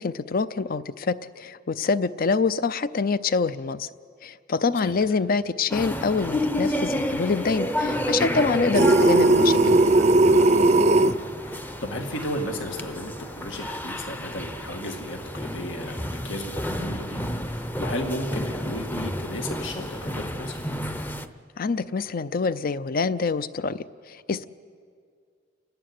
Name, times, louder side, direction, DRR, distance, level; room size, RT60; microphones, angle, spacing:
voice 1, 0.0-3.9 4.2-9.8 21.6-24.4, left 4 dB, 50° left, 15 dB, 0.5 m, -26 dB
sound 1, 5.7-21.3, equal, 10° left, 0.7 m, -31 dB
sound 2, 8.7-11.1, right 2 dB, 35° right, 0.5 m, -17 dB
voice 2, 10.9-20.6, left 1 dB, 80° left, 3 dB, 1.9 m, -34 dB
29.5 x 11.5 x 9.6 m, 2.2 s
head